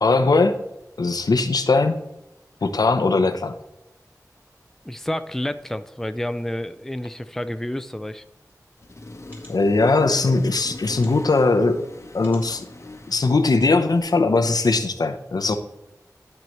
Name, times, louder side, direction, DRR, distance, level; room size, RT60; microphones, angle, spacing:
voice 1, 0.0-0.6 1.0-2.0 2.6-3.5 9.5-11.9 12.1-12.6 13.1-15.6, left 3 dB, 85° left, 8 dB, 0.7 m, -20 dB
voice 2, 4.9-8.2, left 1 dB, 5° left, 11 dB, 0.4 m, -29 dB
sound 1, 8.5-8.6 9.2-9.5 10.5-11.3 12.2-12.7 13.2-13.3 13.7-13.8, equal, 30° right, 2.8 m, -47 dB
Accelerating revving vroom, 8.8-14.0, left 2 dB, 45° left, 0.9 m, -41 dB
12.0 x 4.8 x 3.0 m, 0.90 s
wide cardioid pair, 65°, 7 cm